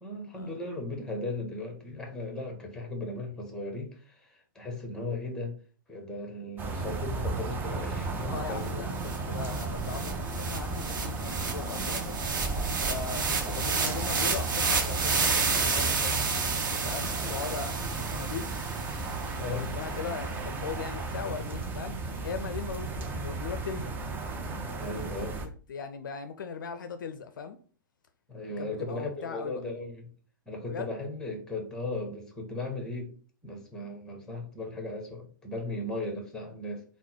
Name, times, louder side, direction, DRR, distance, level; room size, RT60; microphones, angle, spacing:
voice 1, 0.0-5.6 5.9-8.9 13.3-13.5 15.6-15.9 16.6-16.7 17.2-17.6 18.9-19.7 24.8-25.4 28.3-30.1 30.5-33.1 33.4-36.8, left 2 dB, 5° left, 1.0 m, -37 dB
sound 1, 6.6-25.5, right 3 dB, 15° right, 0.5 m, -34 dB
voice 2, 8.3-12.2 12.9-16.2 16.8-18.5 19.5-22.0 22.2-23.9 25.2-27.6 28.6-29.6 30.7-30.9, left 6 dB, 65° left, 0.4 m, -39 dB
sound 2, 8.7-8.8 9.0-19.4, right 4 dB, 65° right, 0.8 m, -31 dB
3.7 x 2.0 x 4.3 m
figure-of-eight pair, 110°, 11 cm